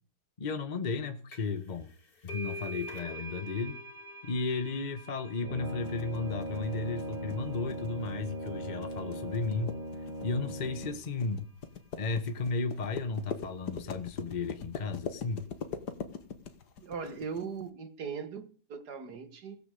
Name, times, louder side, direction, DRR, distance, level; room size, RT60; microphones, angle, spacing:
voice 1, 0.4-1.9 2.2-3.8 4.2-9.8 10.2-11.5 12.0-15.4, left 4 dB, 30° left, 1.1 m, -34 dB
sound 1, 1.3-1.6 1.9-9.2, left 1 dB, 60° left, 3.2 m, -46 dB
Brass instrument, 5.4-11.2, equal, 30° right, 1.3 m, -39 dB
sound 2, 5.8-17.4, left 6 dB, 90° left, 2.1 m, -41 dB
voice 2, 16.8-19.6, right 6 dB, 80° right, 2.3 m, -39 dB
16.5 x 8.1 x 8.3 m
omnidirectional pair, 1.7 m